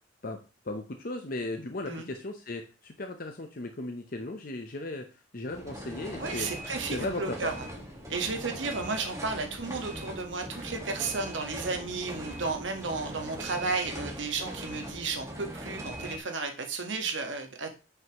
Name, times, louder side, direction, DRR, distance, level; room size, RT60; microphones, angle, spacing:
voice 1, 0.6-5.1 5.3-6.5 6.9-7.5, left 2 dB, 50° left, 5 dB, 0.8 m, -36 dB
sound 1, 5.5-16.2, equal, 15° right, 1.6 m, -40 dB
voice 2, 6.2-7.5 8.1-17.7, right 4 dB, 85° right, 5 dB, 1.5 m, -33 dB
9.3 x 5.7 x 3.0 m, 0.32 s
head